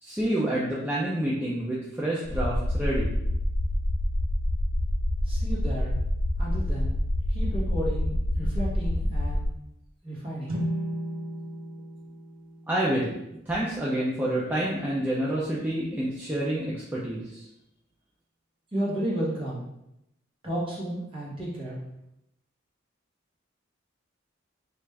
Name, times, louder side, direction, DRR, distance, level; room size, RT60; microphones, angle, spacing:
voice 1, 0.0-3.1 12.7-13.2 13.5-17.4, right 1 dB, 10° right, -6 dB, 0.4 m, -28 dB
sound 1, 2.2-9.5, left 1 dB, 75° left, 0.4 m, -27 dB
voice 2, 5.2-5.9 6.4-6.9 7.3-9.5 10.0-10.6 18.7-19.6 20.4-21.8, right 1 dB, 25° right, -6 dB, 1.1 m, -32 dB
sound 2, 10.5-14.0, equal, 80° right, 0.6 m, -36 dB
3.4 x 2.5 x 3.2 m, 0.84 s
head